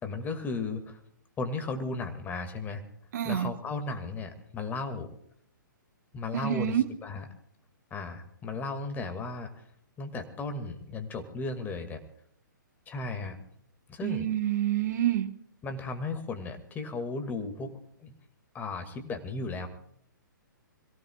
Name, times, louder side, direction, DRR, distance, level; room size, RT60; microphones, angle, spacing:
voice 1, 0.0-1.0 1.4-2.8 3.2-5.1 6.1-7.3 7.9-9.6 10.0-12.0 12.9-13.4 13.9-14.3 15.6-17.7 18.0-18.1 18.5-19.7, left 3 dB, 15° left, 7 dB, 2.1 m, -35 dB
voice 2, 3.1-3.5 6.3-6.9 14.0-15.3, right 12 dB, 55° right, 5 dB, 1.7 m, -27 dB
26.5 x 17.0 x 2.4 m, 0.70 s
figure-of-eight pair, 125°, 11 cm